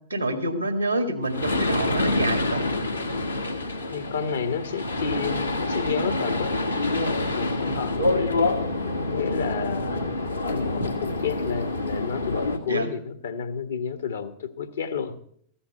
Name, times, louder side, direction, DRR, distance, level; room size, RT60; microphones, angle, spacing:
voice 1, 0.1-2.6 12.7-12.9, right 1 dB, 85° right, 8 dB, 2.0 m, -27 dB
sound 1, 1.2-12.6, left 2 dB, 85° left, 1.6 m, -27 dB
voice 2, 3.9-6.7 7.4-8.4 9.1-10.1 10.5-15.2, left 6 dB, 70° left, 10 dB, 1.3 m, -31 dB
14.5 x 8.7 x 6.8 m, 0.63 s
figure-of-eight pair, 90°, 0 cm